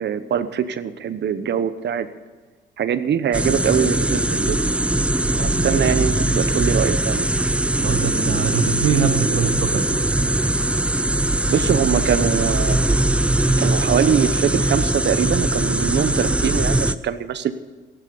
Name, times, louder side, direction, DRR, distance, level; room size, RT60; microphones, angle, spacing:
voice 1, 0.0-2.1 2.8-4.6 5.3-7.3 11.5-12.8 13.6-17.5, right 8 dB, 60° right, 11 dB, 1.1 m, -22 dB
sound 1, 3.3-16.9, right 1 dB, 5° right, 0.7 m, -21 dB
voice 2, 7.8-9.8, right 7 dB, 80° right, 6 dB, 1.7 m, -23 dB
15.0 x 11.5 x 7.1 m, 1.4 s
cardioid pair, 90°, 20 cm